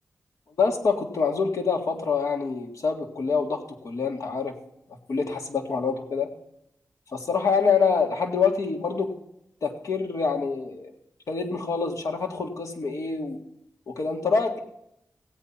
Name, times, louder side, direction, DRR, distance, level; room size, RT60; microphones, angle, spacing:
voice 1, 0.6-4.5 5.1-6.3 7.1-9.1 9.6-10.9 11.3-13.4 13.9-14.6, left 5 dB, 75° left, 4 dB, 1.9 m, -26 dB
16.0 x 8.5 x 5.8 m, 0.79 s
cardioid pair, 65°, 5 cm